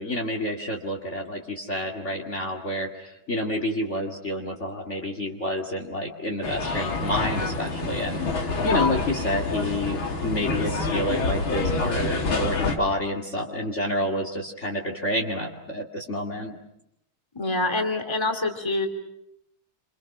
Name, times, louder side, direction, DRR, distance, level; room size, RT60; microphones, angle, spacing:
voice 1, 0.0-16.6, left 1 dB, 35° left, 3 dB, 2.6 m, -29 dB
sound 1, 6.4-12.8, left 3 dB, 75° left, 3.3 m, -27 dB
voice 2, 17.3-18.9, left 2 dB, 15° left, 4 dB, 2.7 m, -26 dB
28.5 x 27.5 x 6.0 m, 0.81 s
omnidirectional pair, 2.2 m